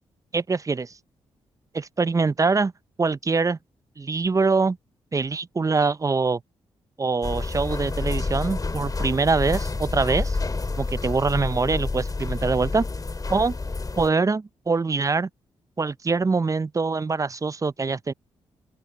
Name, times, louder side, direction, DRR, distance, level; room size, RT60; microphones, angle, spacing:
voice 1, 0.3-0.9 1.7-2.7 3.0-3.6 4.0-4.8 5.1-6.4 7.0-10.4 10.8-12.9 13.3-13.6 14.0-15.3 15.8-18.1, right 4 dB, 30° right, 0.6 m, -24 dB
sound 1, 7.2-14.1, left 3 dB, 35° left, 3.3 m, -29 dB
open air
supercardioid pair, 50°, 11 cm